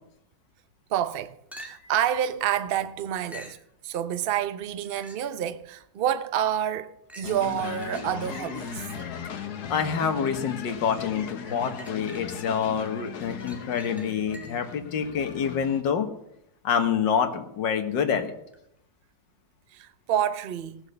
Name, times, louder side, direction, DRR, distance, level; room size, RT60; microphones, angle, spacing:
voice 1, 0.9-3.6 3.8-8.9 19.7-20.8, right 10 dB, 55° right, 0.6 m, -28 dB
sound 1, 1.5-2.1 3.3-3.7 4.6-5.4 6.0-6.1 7.1-10.1 11.4-12.7 13.1-14.8 18.5-18.6, equal, ahead, 1.8 m, -48 dB
sound 2, 7.2-15.8, left 7 dB, 65° left, 1.6 m, -37 dB
voice 2, 9.7-16.1 16.6-18.3, left 7 dB, 90° left, 1.9 m, -27 dB
18.0 x 7.4 x 6.6 m
omnidirectional pair, 1.9 m